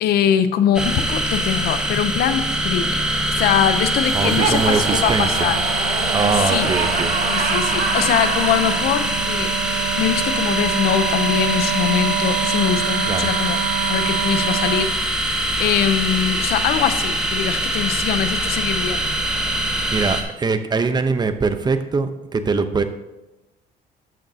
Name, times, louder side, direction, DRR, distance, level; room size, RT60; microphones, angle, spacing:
voice 1, 0.0-5.6 6.5-6.7 7.3-9.5 10.0-13.6 13.9-14.9 15.6-19.0, left 9 dB, 70° left, 12 dB, 0.6 m, -22 dB
sound 1, 0.7-20.2, right 1 dB, 5° right, 1.3 m, -23 dB
Wind instrument woodwind instrument, 2.0-14.9, right 9 dB, 75° right, 0.8 m, -28 dB
Laughter, 4.0-8.8, right 5 dB, 50° right, 1.2 m, -26 dB
voice 2, 4.1-5.5 6.1-7.2 13.1-13.3 19.9-22.8, right 4 dB, 25° right, 9 dB, 0.7 m, -22 dB
12.5 x 6.6 x 2.8 m, 1.0 s
cardioid pair, 110°, 17 cm